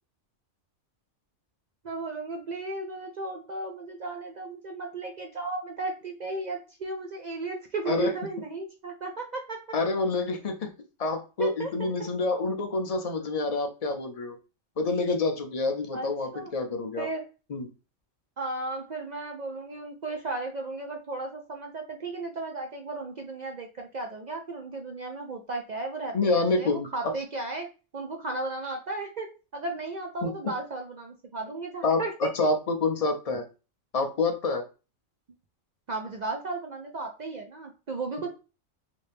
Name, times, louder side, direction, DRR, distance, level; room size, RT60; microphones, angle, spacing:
voice 1, 1.8-9.6 11.4-12.1 15.9-16.5 17.0-17.2 18.4-27.7 27.9-32.3 35.9-38.3, right 3 dB, 65° right, 3 dB, 0.4 m, -35 dB
voice 2, 9.7-10.7 11.0-14.4 14.8-17.1 17.5-17.7 26.1-27.1 30.2-30.3 31.8-33.4 33.9-34.6, left 3 dB, 50° left, 5 dB, 0.4 m, -27 dB
3.2 x 2.7 x 3.3 m, 0.32 s
omnidirectional pair, 1.3 m